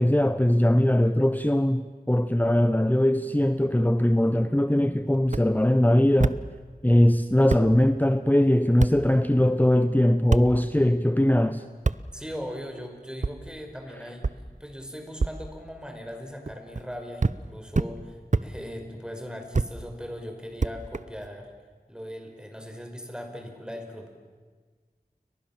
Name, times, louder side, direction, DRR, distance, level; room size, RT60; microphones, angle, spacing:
voice 1, 0.0-6.4 6.8-11.6, left 1 dB, 10° left, 0.9 m, -21 dB
sound 1, 5.3-5.4 6.2-6.4 7.1-7.2 7.5-7.6 8.8-8.9 10.3-10.5 11.8-12.0 13.2-13.3 14.2-14.4 15.2-15.3 16.4-16.9 17.2-17.4 17.7-17.9 18.3-18.5 19.5-19.7 20.6-21.3, right 3 dB, 50° right, 0.8 m, -25 dB
voice 2, 12.1-21.5 21.9-24.1, equal, 5° right, 5.5 m, -39 dB
29.5 x 23.5 x 7.4 m
wide cardioid pair, 45°, 16 cm